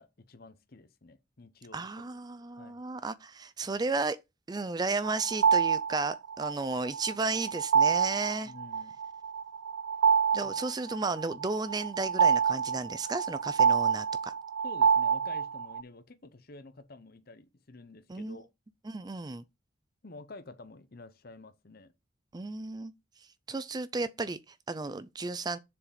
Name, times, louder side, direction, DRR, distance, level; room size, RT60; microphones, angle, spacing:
voice 1, 0.0-1.9 2.6-2.8 8.4-9.0 10.4-10.5 14.6-18.5 20.0-21.9, left 2 dB, 50° left, 0.8 m, -50 dB
voice 2, 1.7-4.2 4.5-8.5 10.3-14.3 18.1-18.4 18.8-19.4 22.3-22.9 23.5-25.6, right 3 dB, 20° right, 0.4 m, -33 dB
sound 1, 5.0-15.8, right 6 dB, 85° right, 0.3 m, -27 dB
7.1 x 4.8 x 5.1 m
head